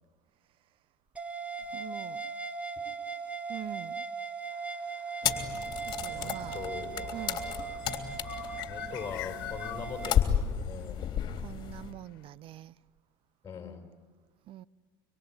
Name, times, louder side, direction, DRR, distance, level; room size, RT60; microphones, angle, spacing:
sound 1, 1.2-10.2, right 5 dB, 10° right, 1.6 m, -39 dB
voice 1, 1.7-2.3 3.5-4.0 5.8-6.6 7.1-7.5 11.3-12.7 14.5-14.7, right 13 dB, 50° right, 0.8 m, -44 dB
sound 2, 4.5-12.2, left 17 dB, 70° left, 1.7 m, -47 dB
sound 3, 5.2-11.9, left 9 dB, 40° left, 3.4 m, -33 dB
voice 2, 6.2-7.7 8.7-11.2 13.4-13.9, left 6 dB, 25° left, 5.2 m, -42 dB
25.0 x 24.5 x 9.7 m
hypercardioid pair, 95°, 12 cm